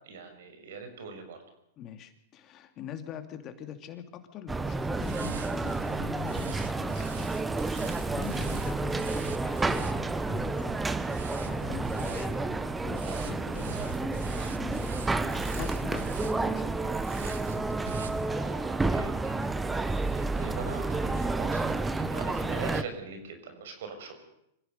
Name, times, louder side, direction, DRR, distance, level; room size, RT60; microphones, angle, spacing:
voice 1, 0.0-1.4 18.3-19.3 19.7-24.1, right 5 dB, 70° right, 7 dB, 6.5 m, -42 dB
voice 2, 1.8-7.3 7.8-10.7 11.4-17.1, left 9 dB, 35° left, 8 dB, 2.7 m, -43 dB
sound 1, 4.5-22.8, right 3 dB, 10° right, 1.2 m, -30 dB
sound 2, 4.9-18.6, right 6 dB, 90° right, 2.2 m, -46 dB
25.5 x 16.0 x 6.8 m, 0.76 s
hypercardioid pair, 125°, 0 cm